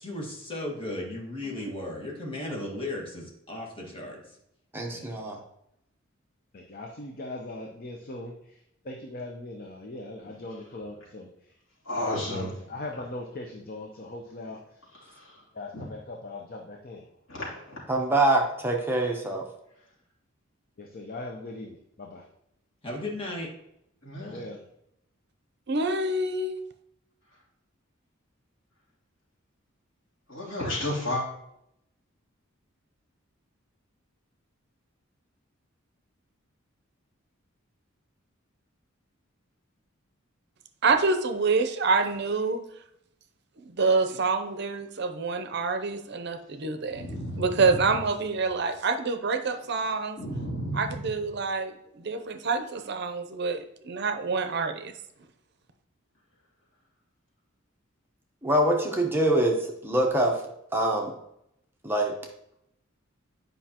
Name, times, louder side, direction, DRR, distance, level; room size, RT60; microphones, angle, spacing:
voice 1, 0.0-4.2 22.8-23.5, left 1 dB, 25° left, -2 dB, 1.6 m, -35 dB
voice 2, 4.7-5.4 17.9-19.4 58.4-60.4 60.7-61.1 61.8-62.1, right 1 dB, 10° right, 1 dB, 0.8 m, -24 dB
voice 3, 6.5-8.6 8.8-11.3 11.9-14.6 15.5-17.1 20.8-22.2 24.2-24.6, left 2 dB, 45° left, 1 dB, 0.7 m, -40 dB
voice 4, 11.8-12.5 15.7-15.9 17.3-17.8 24.0-24.4 30.3-31.2 46.9-47.8 50.2-51.1, left 1 dB, 75° left, -6 dB, 3.0 m, -32 dB
voice 5, 25.7-26.6 40.8-42.6 43.6-47.1 47.4-50.2 50.7-51.7 52.0-54.9, right 4 dB, 55° right, 8 dB, 0.6 m, -27 dB
9.5 x 5.3 x 2.9 m, 0.78 s
head